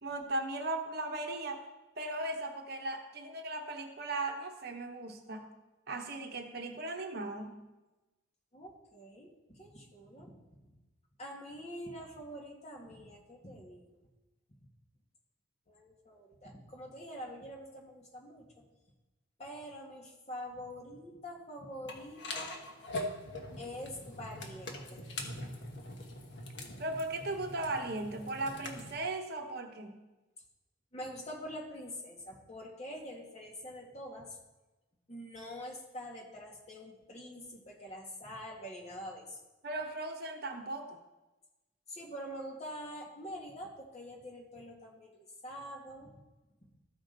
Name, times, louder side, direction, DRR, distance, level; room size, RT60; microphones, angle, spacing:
voice 1, 0.0-1.6 2.0-5.5 5.9-7.6 26.8-30.0 39.6-41.0, right 2 dB, 50° right, 4 dB, 1.0 m, -37 dB
voice 2, 8.5-10.3 10.6-10.7 11.2-13.9 15.7-18.6 19.4-22.6 23.6-25.0 30.9-34.4 35.1-39.4 41.9-46.2, equal, 35° left, -2 dB, 1.8 m, -45 dB
sound 1, 21.9-29.0, left 1 dB, 60° left, 1.3 m, -43 dB
14.5 x 5.0 x 3.9 m, 1.1 s
head